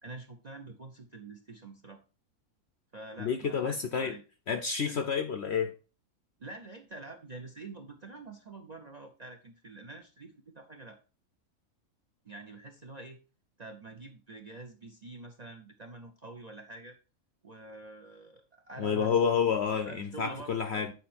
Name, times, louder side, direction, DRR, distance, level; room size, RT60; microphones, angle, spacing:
voice 1, 0.0-2.0 2.9-4.2 4.8-5.3 6.4-11.0 12.2-13.2 13.6-17.0 17.4-19.4 19.7-20.9, right 2 dB, 40° right, 0.7 m, -46 dB
voice 2, 3.2-4.2 4.5-5.7 18.8-20.9, left 6 dB, 60° left, 0.7 m, -29 dB
8.4 x 4.6 x 4.3 m
omnidirectional pair, 1.6 m